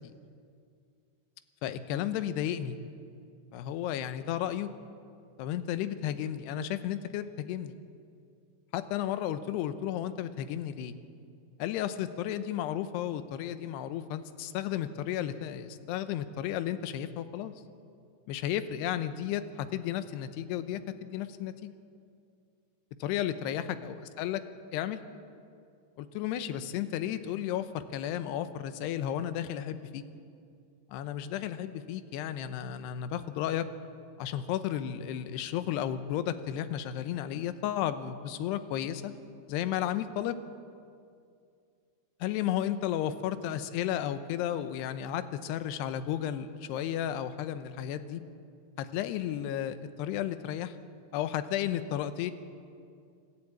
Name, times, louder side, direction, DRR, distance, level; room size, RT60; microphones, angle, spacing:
voice 1, 1.6-2.8 3.5-4.7 5.4-7.8 8.7-10.9 11.6-17.5 18.3-21.7 23.0-24.4 24.7-25.0 26.0-30.0 30.9-33.7 34.2-39.1 39.5-40.4 42.2-48.2 48.8-50.8 51.1-52.3, left 11 dB, 75° left, 11 dB, 2.8 m, -33 dB
28.0 x 12.5 x 8.7 m, 2.3 s
omnidirectional pair, 5.2 m